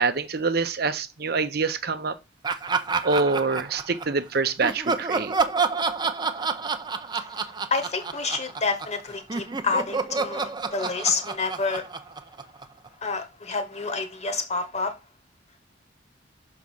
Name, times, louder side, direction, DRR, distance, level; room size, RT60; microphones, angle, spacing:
voice 1, 0.0-2.2 3.0-5.3, right 4 dB, 55° right, 0.8 m, -25 dB
Laughter, 2.4-4.2 4.6-9.0 9.3-12.9, right 4 dB, 25° right, 0.6 m, -29 dB
voice 2, 7.7-11.9 13.0-14.9, left 4 dB, 35° left, 1.5 m, -28 dB
6.3 x 4.7 x 5.4 m
head